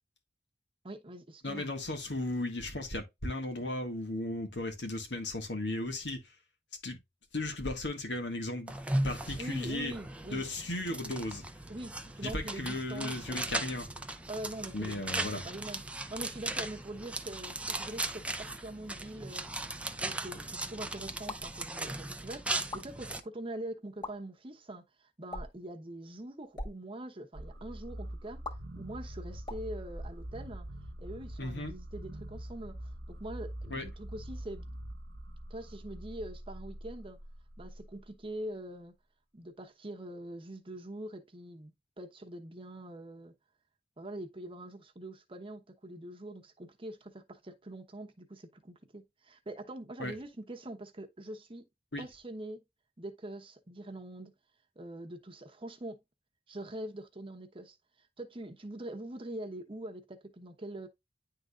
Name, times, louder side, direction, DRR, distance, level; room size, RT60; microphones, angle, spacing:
voice 1, 0.8-1.7 9.4-10.5 11.7-13.6 14.3-19.5 20.0-28.4 28.8-30.7 31.0-32.8 33.1-34.6 35.5-37.2 37.6-38.9 39.3-43.3 44.0-51.6 52.0-52.6 53.0-54.3 54.8-56.0 56.5-57.8 58.2-60.9, right 1 dB, 30° right, 1.0 m, -44 dB
voice 2, 1.4-6.2 6.8-7.0 7.3-8.7 9.0-9.9 10.3-11.4 12.2-13.9 14.7-15.4 31.4-31.7 33.7-33.9 50.0-50.1 51.9-52.0, left 1 dB, 75° left, 1.9 m, -35 dB
sound 1, 8.7-23.2, right 2 dB, 5° right, 0.6 m, -38 dB
sound 2, 21.3-21.6 22.6-22.9 23.9-24.1 25.3-25.7 26.4-26.7 28.4-28.5 29.4-30.6, left 2 dB, 25° left, 2.2 m, -41 dB
sound 3, 27.3-38.2, right 1 dB, 85° right, 1.1 m, -44 dB
10.5 x 3.8 x 2.4 m
head